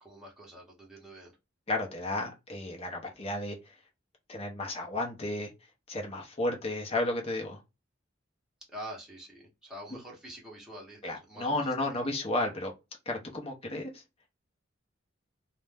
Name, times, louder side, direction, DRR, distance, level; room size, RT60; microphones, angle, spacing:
voice 1, 0.0-1.3 8.7-11.7, right 1 dB, 5° right, 0.8 m, -46 dB
voice 2, 1.7-3.7 4.3-5.5 5.9-7.6 11.0-12.7 13.1-14.0, left 2 dB, 30° left, 0.7 m, -33 dB
2.5 x 2.1 x 3.2 m
head